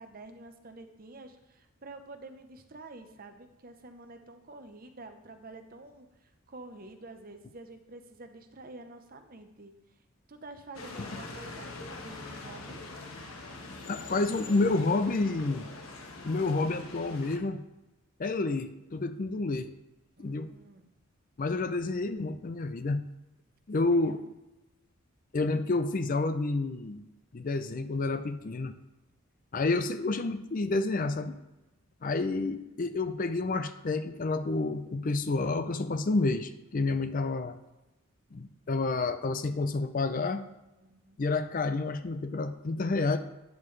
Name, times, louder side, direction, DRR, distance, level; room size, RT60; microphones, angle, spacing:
voice 1, 0.0-9.7 10.3-12.8 20.2-20.9 23.9-24.2 40.8-41.2, right 2 dB, 40° right, 7 dB, 0.8 m, -48 dB
sound 1, 10.7-17.4, left 3 dB, 75° left, 1.3 m, -43 dB
voice 2, 13.9-15.7 16.2-17.6 18.2-19.7 20.2-20.5 21.4-23.0 23.7-24.2 25.3-27.1 27.3-28.7 29.5-31.4 32.0-37.6 38.3-40.4 41.2-43.2, left 3 dB, 40° left, 10 dB, 0.4 m, -29 dB
9.5 x 7.3 x 3.2 m, 1.0 s
head